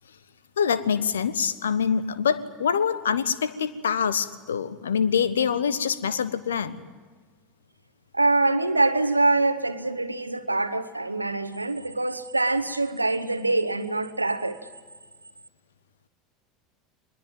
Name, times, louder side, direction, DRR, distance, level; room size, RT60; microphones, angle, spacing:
voice 1, 0.6-6.8, left 7 dB, 75° left, 1.1 m, -25 dB
voice 2, 8.1-14.6, right 2 dB, 90° right, 1.0 m, -24 dB
23.0 x 21.0 x 9.1 m
figure-of-eight pair, 75°, 0 cm